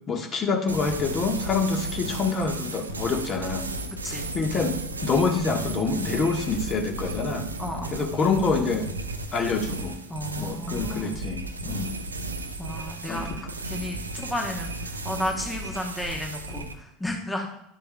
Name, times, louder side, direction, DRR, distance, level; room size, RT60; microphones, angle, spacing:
voice 1, 0.1-3.7 4.3-4.8 5.0-7.5 7.9-8.9 9.3-10.0 10.4-11.9 13.1-13.2, left 4 dB, 30° left, 4 dB, 1.3 m, -26 dB
sound 1, 0.7-16.8, right 2 dB, 85° right, 0.6 m, -34 dB
voice 2, 7.6-8.0 10.1-11.2 12.6-17.5, left 1 dB, 10° left, 1 dB, 1.1 m, -33 dB
10.5 x 6.8 x 2.3 m, 0.82 s
figure-of-eight pair, 75°, 0 cm